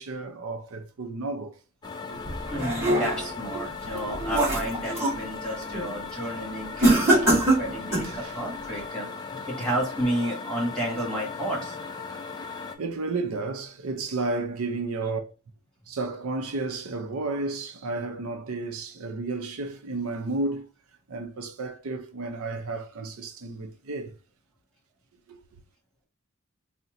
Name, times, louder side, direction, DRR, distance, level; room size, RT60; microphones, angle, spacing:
voice 1, 0.0-1.6 2.1-2.3 2.6-2.8 3.5-3.6 3.9-4.0 6.3-6.4 6.8-7.6 8.0-8.4 8.8-8.9 12.8-15.2 15.9-20.7 21.1-24.1 25.3-25.4, right 3 dB, 75° right, 0.5 m, -32 dB
sound 1, 1.8-12.8, left 4 dB, 20° left, 0.4 m, -38 dB
sound 2, 2.3-3.4 3.9-5.2 5.6-5.9 6.8-8.2, right 1 dB, 15° right, 1.9 m, -23 dB
voice 2, 2.5-9.1 9.5-11.7, right 1 dB, 5° left, 1.6 m, -31 dB
4.2 x 2.1 x 3.7 m
head